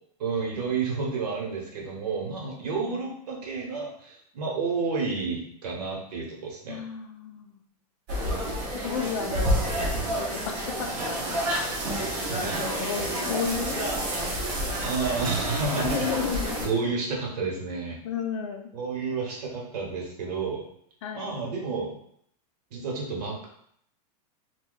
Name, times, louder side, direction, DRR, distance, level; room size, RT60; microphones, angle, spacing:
voice 1, 0.2-6.8 12.3-12.6 14.8-16.1 16.6-18.0 18.7-20.6 21.1-21.9 22.7-23.5, right 4 dB, 75° right, -1 dB, 1.1 m, -30 dB
voice 2, 6.7-7.6 8.8-9.9 10.1-11.7 12.4-13.8 15.8-16.9 18.0-18.7 21.0-21.3, left 7 dB, 45° left, 5 dB, 0.4 m, -33 dB
sound 1, 8.1-16.7, right 1 dB, 25° right, 0.6 m, -29 dB
2.7 x 2.3 x 3.8 m, 0.68 s
supercardioid pair, 175°, 21 cm